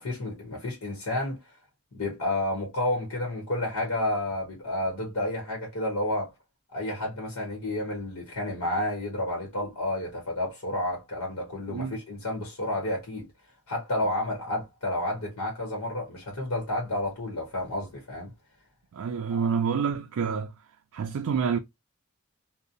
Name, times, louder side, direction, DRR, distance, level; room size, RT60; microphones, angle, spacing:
voice 1, 0.0-1.4 1.9-6.3 6.7-13.2 13.7-18.3 19.3-19.5, left 1 dB, 90° left, 0.9 m, -30 dB
voice 2, 18.9-20.5 20.9-21.6, right 6 dB, 80° right, 0.4 m, -28 dB
2.6 x 2.0 x 2.5 m
head